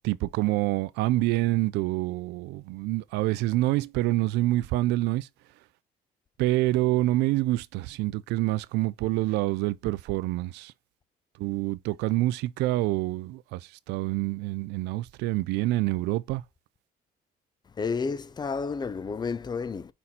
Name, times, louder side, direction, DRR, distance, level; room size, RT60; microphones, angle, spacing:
voice 1, 0.0-5.3 6.4-10.7 11.4-16.4, right 17 dB, 85° right, 0.4 m, -27 dB
voice 2, 17.8-19.9, left 5 dB, 25° left, 0.5 m, -31 dB
5.5 x 4.1 x 4.2 m
cardioid pair, 110°, 17 cm